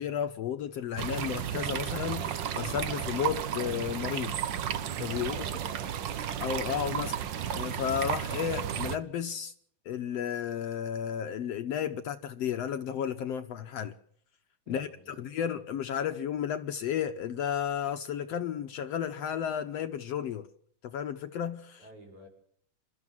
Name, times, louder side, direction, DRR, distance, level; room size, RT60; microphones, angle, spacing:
voice 1, 0.0-4.4 4.7-5.4 6.4-7.2 7.5-9.5 9.9-14.0 14.7-20.5 20.8-21.8, left 9 dB, 65° left, 1.8 m, -33 dB
sound 1, 1.0-9.0, right 9 dB, 90° right, 1.0 m, -33 dB
voice 2, 5.1-6.1 14.7-15.2 21.8-22.3, equal, 65° right, 7.5 m, -50 dB
28.0 x 13.5 x 7.3 m
omnidirectional pair, 3.6 m